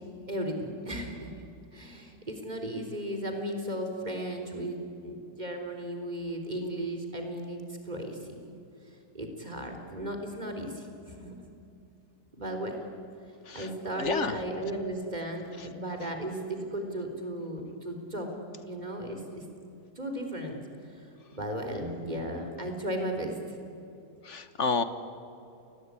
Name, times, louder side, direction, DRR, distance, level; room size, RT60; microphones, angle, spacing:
voice 1, 0.3-1.3 1.7-4.8 5.0-7.6 7.9-8.5 9.1-11.3 12.3-12.8 13.5-18.3 18.6-19.4 20.0-20.6 20.9-21.1 21.3-23.6, right 1 dB, 25° right, 4 dB, 3.9 m, -35 dB
voice 2, 14.0-14.4 15.6-15.7 16.0-16.1 24.2-24.8, left 4 dB, 50° left, 11 dB, 1.5 m, -30 dB
29.5 x 20.5 x 9.8 m, 2.7 s
omnidirectional pair, 1.7 m